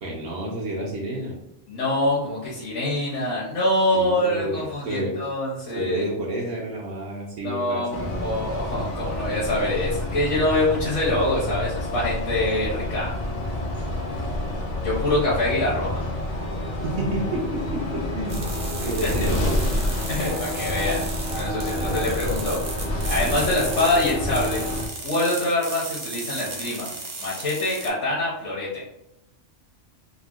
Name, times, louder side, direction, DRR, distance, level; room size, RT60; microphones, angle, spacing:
voice 1, 0.0-1.3 3.9-5.1 5.7-8.3 16.8-18.5 18.8-19.7 21.7-22.2 23.2-23.6, right 1 dB, 70° right, -3 dB, 0.8 m, -30 dB
voice 2, 1.7-6.1 7.4-13.1 14.8-16.0 18.8-19.1 20.1-21.0 21.3-22.6 23.0-24.7 25.0-26.9 27.2-28.8, left 1 dB, 70° left, -7 dB, 1.1 m, -25 dB
sound 1, 7.9-24.9, left 1 dB, 55° left, 0.6 m, -28 dB
sound 2, 18.3-27.9, right 3 dB, 50° right, 0.5 m, -35 dB
3.6 x 2.0 x 2.3 m, 0.88 s
omnidirectional pair, 1.2 m